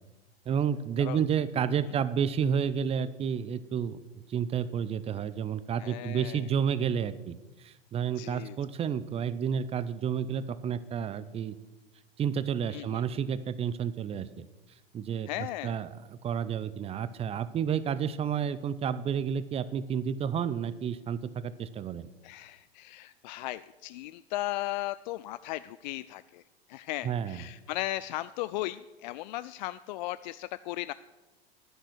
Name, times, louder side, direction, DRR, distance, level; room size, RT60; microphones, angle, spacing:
voice 1, 0.5-4.0 4.3-11.6 12.2-14.5 14.9-15.3 15.6-22.1 27.0-27.4, right 7 dB, 20° right, 16 dB, 0.6 m, -30 dB
voice 2, 5.8-6.4 8.2-8.6 12.7-13.0 15.3-15.8 22.2-26.4 26.7-30.9, left 16 dB, 45° left, 15 dB, 0.4 m, -36 dB
11.0 x 9.7 x 6.2 m, 1.1 s
figure-of-eight pair, 90°, 31 cm